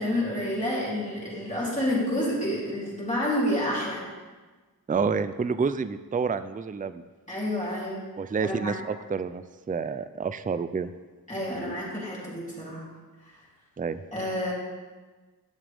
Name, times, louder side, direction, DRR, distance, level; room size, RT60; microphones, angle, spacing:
voice 1, 0.0-4.0 7.3-8.0 8.4-8.7 11.3-12.8 14.1-14.5, left 1 dB, 20° left, -7 dB, 3.3 m, -29 dB
voice 2, 4.9-7.0 8.2-10.9 13.8-14.0, right 5 dB, 25° right, 12 dB, 0.4 m, -29 dB
12.5 x 7.3 x 3.5 m, 1.3 s
wide cardioid pair, 65°, 37 cm